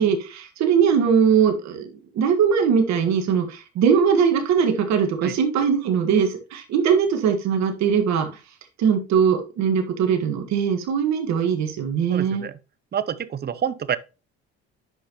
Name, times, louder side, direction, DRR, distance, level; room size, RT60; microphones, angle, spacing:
voice 1, 0.0-8.3 8.8-12.5, right 7 dB, 70° right, 1.6 m, -21 dB
voice 2, 12.1-12.6 12.9-14.0, right 8 dB, 35° right, 0.7 m, -28 dB
10.0 x 5.5 x 2.9 m
supercardioid pair, 80°, 29 cm